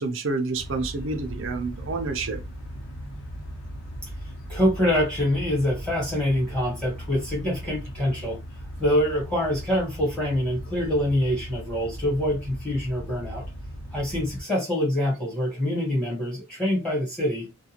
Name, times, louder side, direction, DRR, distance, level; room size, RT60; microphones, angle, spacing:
voice 1, 0.0-2.4, right 3 dB, 60° right, 0.5 m, -29 dB
sound 1, 0.5-14.4, equal, 80° left, 1.0 m, -38 dB
voice 2, 4.5-8.4 8.8-13.4 13.9-17.5, left 1 dB, 5° left, 1.2 m, -25 dB
2.4 x 2.3 x 2.8 m
head